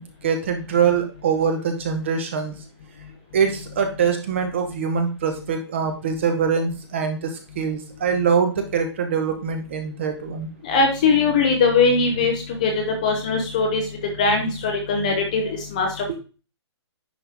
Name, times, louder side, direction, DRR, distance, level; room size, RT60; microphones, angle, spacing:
voice 1, 0.2-2.5 3.3-10.5 16.1-16.2, right 6 dB, 25° right, 6 dB, 1.0 m, -23 dB
voice 2, 10.6-16.1, left 4 dB, 15° left, 3 dB, 0.7 m, -21 dB
10.0 x 4.3 x 3.5 m, 0.34 s
hypercardioid pair, 180°, 15 cm